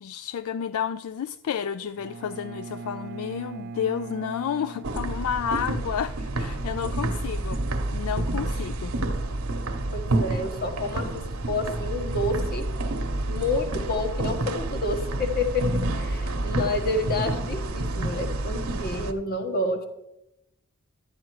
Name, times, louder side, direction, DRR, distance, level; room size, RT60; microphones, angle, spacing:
voice 1, 0.0-7.6 7.9-8.9, left 8 dB, 70° left, 14 dB, 0.3 m, -31 dB
Bowed string instrument, 2.0-5.8, right 4 dB, 45° right, 0.4 m, -40 dB
sound 1, 4.8-19.1, right 2 dB, 65° right, 1.0 m, -29 dB
voice 2, 9.9-12.7 13.3-19.9, left 2 dB, 45° left, 5 dB, 1.4 m, -29 dB
11.5 x 8.5 x 4.7 m, 0.84 s
head